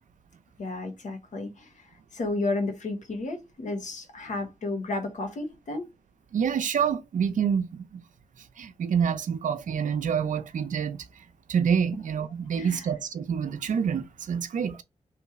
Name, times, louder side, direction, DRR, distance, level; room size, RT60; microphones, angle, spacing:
voice 1, 0.6-1.7 2.1-5.9 12.5-12.9, left 2 dB, 75° left, 1.3 m, -32 dB
voice 2, 6.3-8.0 8.6-11.0 11.5-14.8, right 7 dB, 85° right, 0.6 m, -27 dB
3.3 x 3.0 x 4.6 m
cardioid pair, 60°, 13 cm